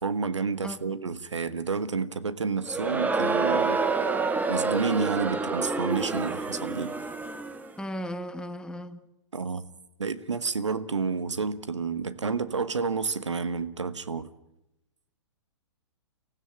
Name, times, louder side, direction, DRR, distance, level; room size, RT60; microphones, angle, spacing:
voice 1, 0.0-3.8 4.5-6.9 9.3-9.6 10.0-14.3, right 5 dB, 80° right, 1.4 m, -30 dB
Crowd, 2.7-7.7, right 4 dB, 10° right, 1.5 m, -28 dB
voice 2, 7.8-9.1, equal, 5° left, 1.5 m, -36 dB
25.0 x 15.5 x 8.9 m
figure-of-eight pair, 115°, 15 cm